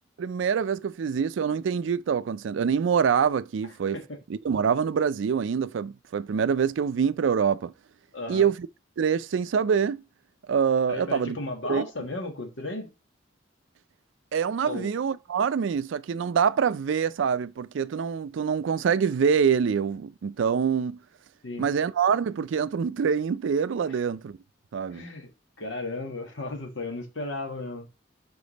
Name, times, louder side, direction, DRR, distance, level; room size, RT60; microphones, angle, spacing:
voice 1, 0.2-4.0 4.3-7.7 8.3-8.6 9.0-10.0 10.5-11.4 11.7-11.8 14.3-21.0 21.6-24.4 24.7-25.0, right 6 dB, 75° right, 0.4 m, -25 dB
voice 2, 8.1-8.5 10.9-12.9 14.6-14.9 21.4-21.7 23.9-24.0 24.9-25.3 25.6-27.9, left 2 dB, 75° left, 1.4 m, -35 dB
5.2 x 4.7 x 4.0 m
head